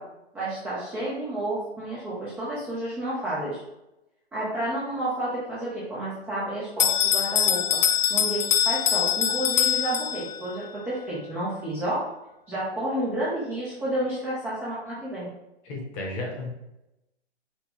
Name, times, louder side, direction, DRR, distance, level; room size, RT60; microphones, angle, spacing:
voice 1, 0.3-3.6 4.3-7.6 8.1-12.0 12.5-15.3, right 1 dB, 5° right, -9 dB, 0.5 m, -30 dB
Bell, 6.8-10.5, left 9 dB, 45° left, 0.4 m, -23 dB
voice 2, 15.6-16.5, left 2 dB, 25° left, -1 dB, 1.0 m, -33 dB
5.1 x 2.2 x 3.5 m, 0.92 s
figure-of-eight pair, 125°, 33 cm